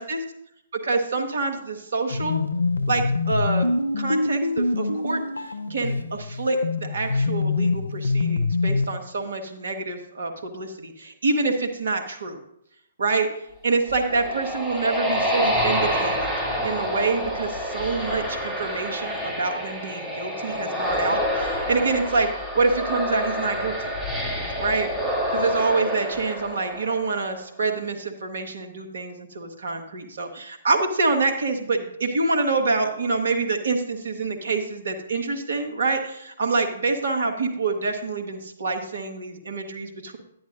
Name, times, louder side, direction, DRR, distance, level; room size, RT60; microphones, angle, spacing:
voice 1, 0.7-2.4 2.9-3.7 4.0-5.2 5.7-12.4 13.0-13.3 13.6-16.3 16.6-23.9 24.6-24.9 25.3-40.2, right 3 dB, 65° right, 4 dB, 1.3 m, -26 dB
sound 1, 2.1-9.0, left 3 dB, 80° left, 0.6 m, -25 dB
sound 2, 13.7-27.3, equal, ahead, 2.7 m, -27 dB
10.5 x 10.0 x 2.6 m, 0.76 s
figure-of-eight pair, 125°, 0 cm